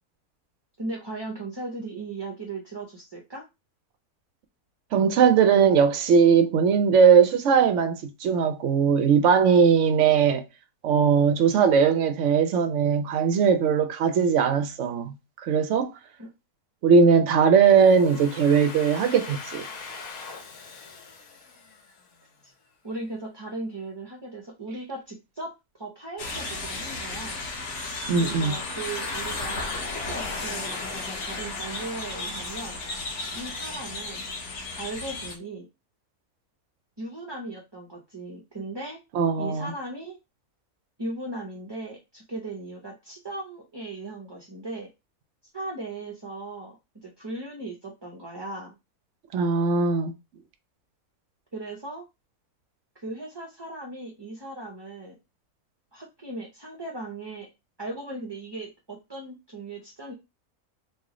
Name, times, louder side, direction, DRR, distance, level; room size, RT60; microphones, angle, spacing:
voice 1, 0.8-3.4 16.2-16.3 22.4-22.5 22.8-25.5 25.8-27.4 28.2-32.8 33.3-34.2 34.8-35.7 37.0-39.0 39.4-40.2 41.0-44.9 45.5-48.7 51.5-52.0 52.9-55.1 55.9-57.5 57.8-60.1, right 2 dB, 30° right, 0.4 m, -37 dB
voice 2, 4.9-10.4 10.8-15.1 15.4-15.9 16.8-19.7 28.1-28.6 39.1-39.7 49.3-50.1, right 6 dB, 65° right, 0.8 m, -20 dB
Domestic sounds home sounds, 17.7-22.4, left 4 dB, 75° left, 1.2 m, -42 dB
sound 1, 26.2-35.4, left 3 dB, 55° left, 1.0 m, -33 dB
3.1 x 2.4 x 3.7 m
omnidirectional pair, 1.6 m